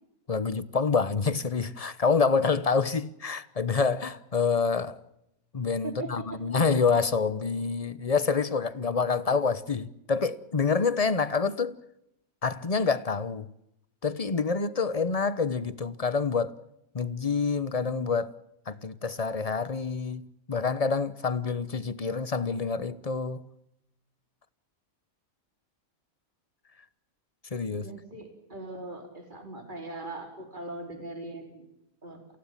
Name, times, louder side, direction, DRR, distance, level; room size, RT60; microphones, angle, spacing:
voice 1, 0.3-5.0 5.5-11.8 12.4-13.5 14.0-16.6 16.9-18.3 18.7-23.5 27.5-27.8, left 5 dB, 30° left, 1.0 m, -27 dB
voice 2, 5.8-6.4 27.7-31.7 32.0-32.2, right 2 dB, 35° right, 4.4 m, -40 dB
28.5 x 16.5 x 7.4 m
omnidirectional pair, 1.5 m